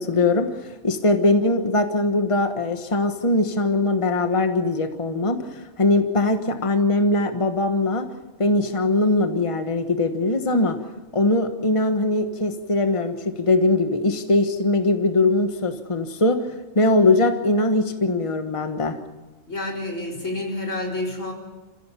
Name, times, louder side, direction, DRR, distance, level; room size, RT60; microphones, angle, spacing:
voice 1, 0.0-8.1 8.4-10.8 11.1-19.0, left 2 dB, 25° left, 7 dB, 1.3 m, -21 dB
voice 2, 19.5-21.3, left 2 dB, 85° left, -1 dB, 4.6 m, -29 dB
28.5 x 15.5 x 7.0 m, 1.2 s
omnidirectional pair, 1.3 m